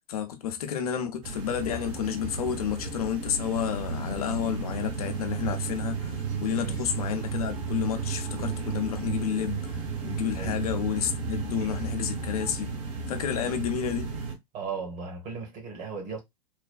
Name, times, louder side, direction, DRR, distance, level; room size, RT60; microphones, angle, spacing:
voice 1, 0.1-6.1 6.4-9.7 10.0-12.7 13.1-14.1, left 9 dB, 60° left, 0.7 m, -30 dB
sound 1, 1.2-14.3, right 5 dB, 55° right, 1.0 m, -33 dB
voice 2, 14.5-16.2, right 5 dB, 40° right, 1.4 m, -37 dB
3.2 x 2.3 x 2.3 m
figure-of-eight pair, 95°, 21 cm